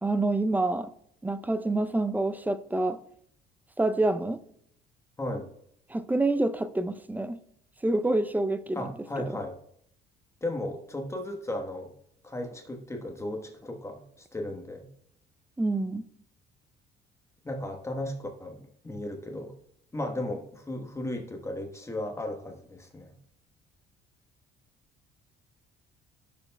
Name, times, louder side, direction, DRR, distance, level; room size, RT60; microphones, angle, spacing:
voice 1, 0.0-0.9 1.2-3.0 3.8-4.4 5.9-7.4 7.8-9.4 15.6-16.1, right 2 dB, 10° right, 0.5 m, -27 dB
voice 2, 5.2-5.5 8.7-9.6 10.4-11.9 12.2-14.9 17.4-19.5 19.9-23.1, left 1 dB, 15° left, 1.1 m, -35 dB
14.5 x 6.9 x 2.2 m
cardioid pair, 105°, 18 cm